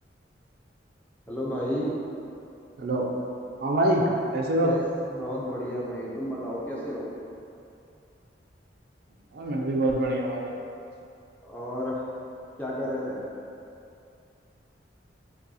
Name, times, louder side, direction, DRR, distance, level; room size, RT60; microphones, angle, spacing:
voice 1, 1.3-2.0 4.6-4.8 5.1-7.1 11.4-12.0 12.6-13.2, equal, 10° left, -6 dB, 0.5 m, -31 dB
voice 2, 2.8-3.1 3.6-4.7 9.3-10.5, right 1 dB, 55° right, -1 dB, 0.4 m, -25 dB
5.2 x 2.3 x 2.7 m, 2.6 s
head